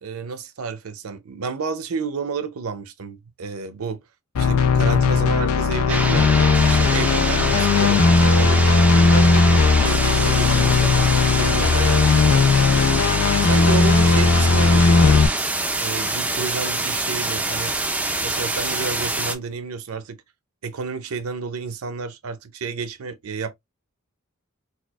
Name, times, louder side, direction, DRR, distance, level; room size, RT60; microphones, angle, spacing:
voice 1, 0.0-4.0 4.4-6.3 6.7-7.5 7.8-11.1 11.4-15.3 15.8-17.7 18.2-20.2 20.6-23.5, right 4 dB, 75° right, 0.6 m, -31 dB
sound 1, 4.3-15.3, left 4 dB, 85° left, 0.5 m, -17 dB
sound 2, 5.9-19.4, right 2 dB, 5° right, 0.4 m, -25 dB
4.2 x 2.4 x 2.3 m
head